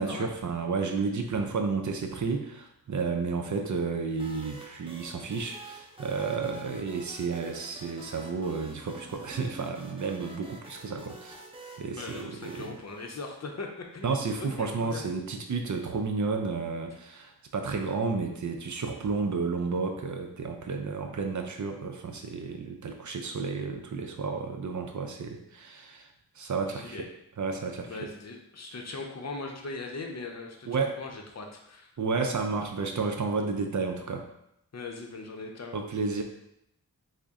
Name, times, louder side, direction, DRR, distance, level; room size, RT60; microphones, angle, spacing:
voice 1, 0.0-11.4 11.8-12.8 14.0-26.1 26.4-27.1 27.4-28.1 30.7-31.0 32.0-34.3 35.7-36.2, right 4 dB, 55° right, 4 dB, 0.5 m, -32 dB
sound 1, 4.1-13.8, right 1 dB, 15° right, 0.7 m, -48 dB
voice 2, 11.9-14.1 14.4-15.0 26.8-27.1 27.9-31.9 34.7-35.8, left 3 dB, 45° left, 2 dB, 0.7 m, -39 dB
3.8 x 2.1 x 3.6 m, 0.79 s
cardioid pair, 55°, 37 cm